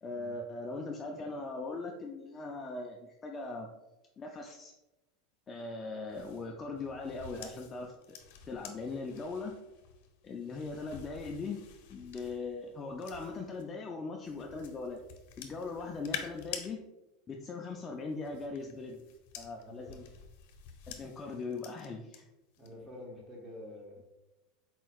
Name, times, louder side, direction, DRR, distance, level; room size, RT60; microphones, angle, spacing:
voice 1, 0.0-3.7 4.2-4.7 5.5-8.2 8.5-9.6 10.2-11.6 11.9-15.0 15.4-16.8 17.3-19.0 19.4-20.1 20.9-22.3, left 3 dB, 20° left, 1 dB, 0.3 m, -40 dB
sound 1, 6.1-13.6 14.2-16.7 17.9-22.2 22.5-22.9, left 8 dB, 60° left, 0.7 m, -48 dB
voice 2, 19.6-20.0 22.6-24.0, left 1 dB, 10° right, -2 dB, 1.0 m, -48 dB
4.4 x 4.3 x 2.3 m, 0.98 s
supercardioid pair, 165°, 0 cm